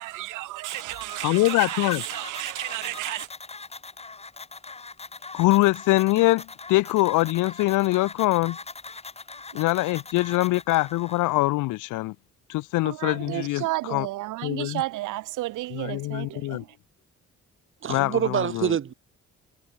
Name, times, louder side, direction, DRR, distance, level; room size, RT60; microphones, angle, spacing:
voice 1, 0.0-3.3 12.8-16.8, right 17 dB, 85° right, 0.7 m, -32 dB
sound 1, 0.7-11.3, left 4 dB, 20° left, 1.5 m, -42 dB
voice 2, 1.2-2.0 5.3-8.6 9.5-12.1 12.5-13.6 13.9-14.1 14.4-14.8 15.7-16.6 17.9-18.8, left 19 dB, 85° left, 0.5 m, -23 dB
voice 3, 13.0-13.4 17.8-18.9, right 8 dB, 40° right, 0.8 m, -27 dB
cardioid pair, 90°, 30 cm